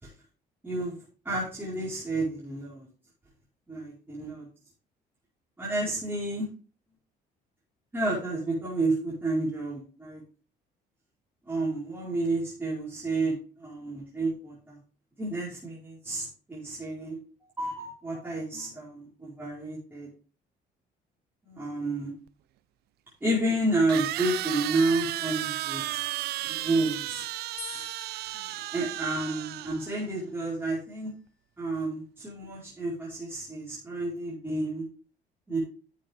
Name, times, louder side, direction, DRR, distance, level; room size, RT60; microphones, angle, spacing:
voice 1, 0.6-0.9 1.2-2.9 3.7-4.5 5.6-6.5 7.9-10.2 11.5-14.8 15.2-17.2 17.6-20.1 21.5-22.1 23.2-26.0 26.4-27.3 27.7-27.8 28.2-31.1 31.6-34.8 35.5-35.6, right 2 dB, 10° right, -7 dB, 5.1 m, -30 dB
sound 1, 22.3-22.4 23.9-30.0, right 16 dB, 70° right, 0.4 m, -34 dB
sound 2, 27.6-30.8, left 12 dB, 75° left, 2.3 m, -49 dB
10.5 x 7.8 x 3.7 m, 0.37 s
cardioid pair, 110°, 17 cm